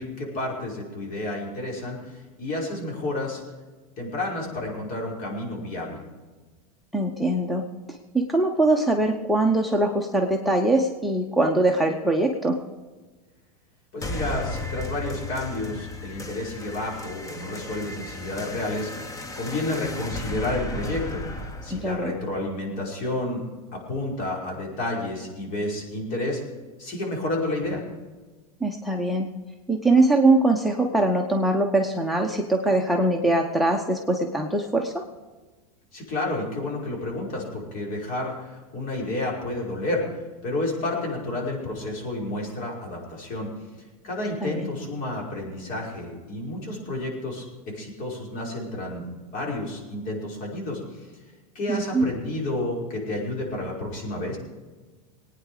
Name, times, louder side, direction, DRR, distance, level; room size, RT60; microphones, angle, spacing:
voice 1, 0.0-3.4 4.0-6.0 13.9-18.9 19.4-23.4 23.7-26.4 26.8-27.8 35.9-40.0 40.4-43.5 44.0-51.1 51.5-54.4, left 2 dB, 45° left, -2 dB, 5.5 m, -30 dB
voice 2, 6.9-7.6 8.1-12.6 21.7-22.2 28.6-29.3 29.7-35.1 44.4-44.7 51.7-52.0, right 2 dB, ahead, 3 dB, 1.0 m, -22 dB
sound 1, 14.0-23.0, left 2 dB, 15° left, 1.2 m, -35 dB
20.5 x 9.5 x 5.1 m, 1.3 s
supercardioid pair, 125°, 20 cm